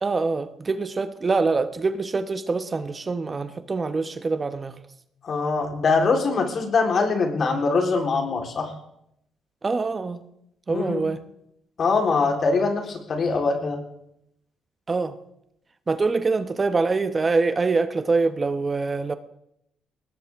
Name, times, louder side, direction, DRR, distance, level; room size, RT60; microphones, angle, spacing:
voice 1, 0.0-4.7 9.6-10.2 10.7-11.2 14.9-15.2 15.9-19.2, right 4 dB, 30° right, 11 dB, 1.0 m, -24 dB
voice 2, 5.2-8.7 10.7-11.0 11.8-13.8, left 4 dB, 50° left, 2 dB, 3.8 m, -23 dB
20.5 x 19.0 x 3.6 m, 0.76 s
cardioid pair, 90°, 0 cm